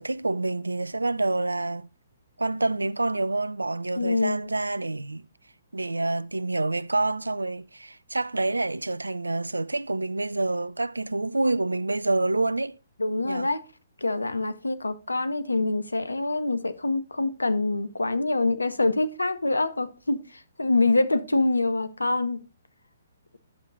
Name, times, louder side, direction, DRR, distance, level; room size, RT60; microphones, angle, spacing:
voice 1, 0.0-1.9 2.4-5.2 5.7-12.7 13.2-13.5, right 2 dB, 80° right, 0.4 m, -27 dB
voice 2, 4.0-4.4 13.0-13.6 14.0-20.2 20.6-22.4, left 2 dB, 80° left, 0.9 m, -25 dB
11.0 x 7.2 x 2.4 m
figure-of-eight pair, 125°, 0 cm